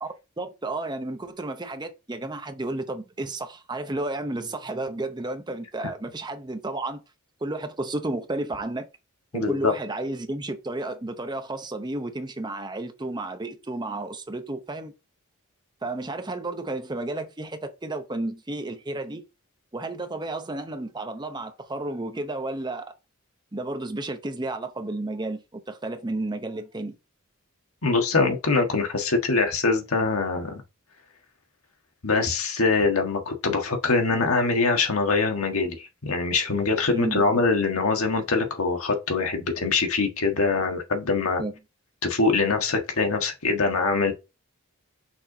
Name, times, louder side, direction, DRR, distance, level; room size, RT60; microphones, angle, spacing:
voice 1, 0.4-7.0 7.4-8.9 9.3-14.9 15.8-19.2 19.7-22.9 23.5-26.9 36.9-37.2 41.4-41.5, right 2 dB, 20° right, 0.7 m, -32 dB
voice 2, 9.3-9.7 27.8-30.6 32.0-41.4 42.0-44.1, left 3 dB, 80° left, 1.5 m, -23 dB
6.0 x 4.4 x 3.8 m
head